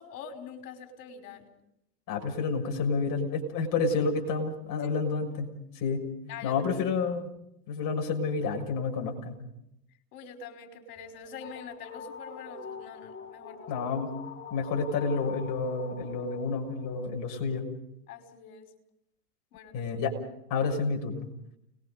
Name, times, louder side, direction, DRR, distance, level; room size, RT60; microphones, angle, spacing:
voice 1, 0.0-1.5 4.8-4.9 6.3-6.6 10.1-13.8 18.1-18.7 19.5-19.9, left 6 dB, 65° left, 5 dB, 5.5 m, -45 dB
voice 2, 2.1-5.5 5.7-6.0 6.4-7.3 7.7-9.3 13.7-14.1 14.5-17.6 19.7-20.1 20.5-21.3, left 4 dB, 40° left, 2 dB, 6.6 m, -29 dB
sound 1, 11.0-17.1, left 6 dB, 25° left, 2.7 m, -45 dB
30.0 x 21.5 x 5.3 m, 0.79 s
hypercardioid pair, 120°, 48 cm